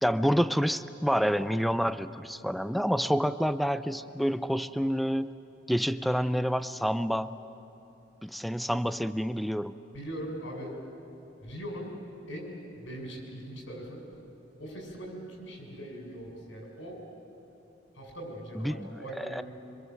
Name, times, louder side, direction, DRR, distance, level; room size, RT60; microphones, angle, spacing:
voice 1, 0.0-5.3 5.7-7.4 8.2-9.7 18.5-19.4, equal, ahead, 13 dB, 0.5 m, -28 dB
voice 2, 9.9-10.7 11.4-11.9 12.3-14.0 14.6-17.0 18.0-19.4, right 1 dB, 80° left, 0 dB, 6.9 m, -40 dB
26.5 x 25.5 x 7.8 m, 2.8 s
head